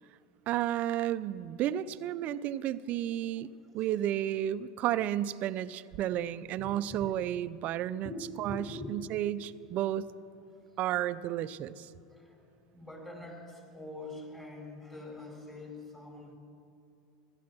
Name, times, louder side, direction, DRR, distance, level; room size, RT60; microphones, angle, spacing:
voice 1, 0.5-3.5 3.7-8.1 8.4-10.1 10.8-11.9, right 12 dB, 50° right, 15 dB, 0.5 m, -32 dB
voice 2, 8.4-8.9 12.1-16.4, left 2 dB, 15° left, 1 dB, 4.5 m, -44 dB
17.0 x 12.5 x 6.1 m, 2.5 s
hypercardioid pair, 100°, 3 cm